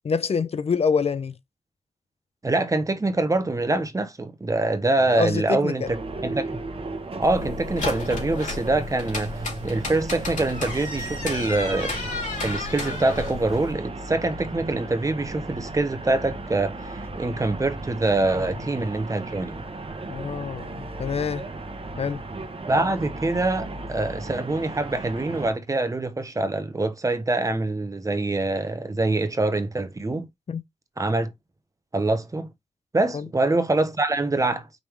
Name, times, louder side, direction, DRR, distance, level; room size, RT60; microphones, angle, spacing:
voice 1, 0.1-1.4 5.1-5.9 18.4-18.5 20.1-21.5 22.0-22.2 30.5-30.6 33.1-33.3, left 5 dB, 55° left, 0.5 m, -26 dB
voice 2, 2.4-5.8 6.2-6.6 7.2-9.3 9.6-12.0 12.4-19.7 22.7-30.3 31.0-31.3 31.9-32.5 32.9-34.7, right 2 dB, 25° right, 0.9 m, -25 dB
sound 1, 5.8-25.5, right 2 dB, 50° right, 1.1 m, -35 dB
sound 2, 7.2-13.7, left 3 dB, 85° left, 2.7 m, -33 dB
5.2 x 3.4 x 3.0 m
wide cardioid pair, 105°, 12 cm